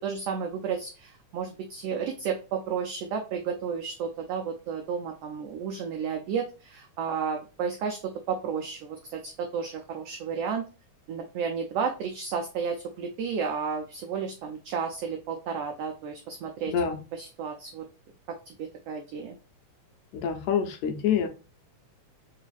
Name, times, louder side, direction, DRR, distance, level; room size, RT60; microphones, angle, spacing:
voice 1, 0.0-8.0 8.3-10.6 11.1-16.7 17.1-17.8 18.5-19.4, right 6 dB, 85° right, 3 dB, 1.3 m, -32 dB
voice 2, 20.1-21.3, left 7 dB, 75° left, 4 dB, 1.8 m, -26 dB
4.7 x 2.4 x 2.4 m, 0.34 s
omnidirectional pair, 3.3 m